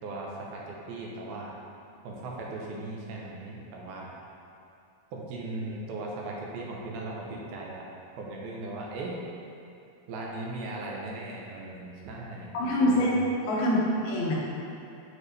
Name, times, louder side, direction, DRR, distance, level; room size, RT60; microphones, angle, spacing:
voice 1, 0.0-1.5 2.0-4.1 5.1-7.8 8.2-9.2 10.1-12.5 12.8-13.2, right 2 dB, 85° right, -3 dB, 2.8 m, -38 dB
voice 2, 12.5-13.1 13.5-14.4, left 1 dB, 80° left, -6 dB, 3.1 m, -25 dB
8.7 x 4.6 x 3.3 m, 2.7 s
omnidirectional pair, 4.2 m